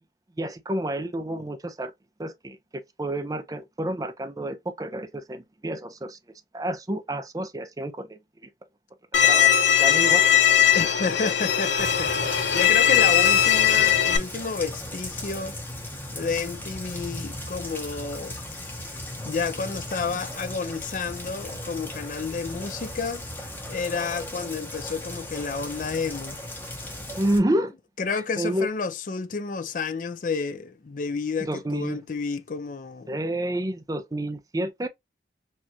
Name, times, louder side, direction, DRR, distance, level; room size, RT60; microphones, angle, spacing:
voice 1, 0.4-1.9 2.2-2.6 3.0-6.2 6.5-8.2 9.2-9.5 9.8-10.2 27.2-27.7 28.4-28.7 31.4-32.0 33.1-34.9, right 1 dB, 20° right, 0.5 m, -29 dB
Bowed string instrument, 9.1-14.2, left 10 dB, 85° left, 0.7 m, -19 dB
voice 2, 10.7-12.2 12.5-15.6 16.1-18.9 19.2-23.2 23.7-26.4 28.0-33.1, left 4 dB, 45° left, 0.4 m, -30 dB
Rain, 11.8-27.4, left 1 dB, 10° left, 0.8 m, -37 dB
4.3 x 2.4 x 2.8 m
head